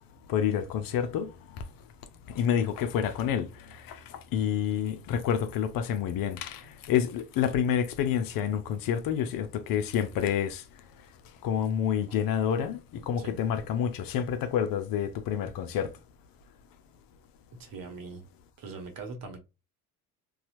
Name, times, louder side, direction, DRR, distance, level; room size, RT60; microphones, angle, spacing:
voice 1, 0.3-1.3 2.3-10.6 11.4-15.9, left 9 dB, 45° left, 0.6 m, -28 dB
voice 2, 17.5-18.2 18.6-19.4, right 4 dB, 45° right, 1.1 m, -41 dB
4.2 x 2.4 x 2.6 m
figure-of-eight pair, 55°, 47 cm